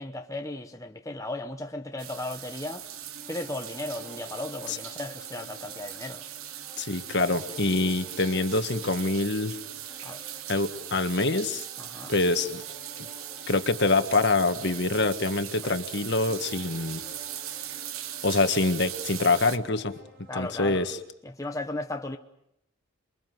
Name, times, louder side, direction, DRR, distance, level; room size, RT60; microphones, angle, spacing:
voice 1, 0.0-2.9 3.3-6.2 10.0-10.2 11.8-12.1 15.6-15.8 20.3-20.9 21.2-22.2, left 2 dB, 15° left, 1.0 m, -36 dB
sound 1, 2.0-19.6, right 11 dB, 90° right, 1.4 m, -40 dB
sound 2, 2.8-20.4, right 1 dB, 50° right, 6.4 m, -51 dB
voice 2, 6.8-9.6 10.5-11.6 12.1-12.6 13.5-17.0 18.2-19.9 20.3-21.0, left 3 dB, 55° left, 1.5 m, -25 dB
28.0 x 23.0 x 7.8 m
head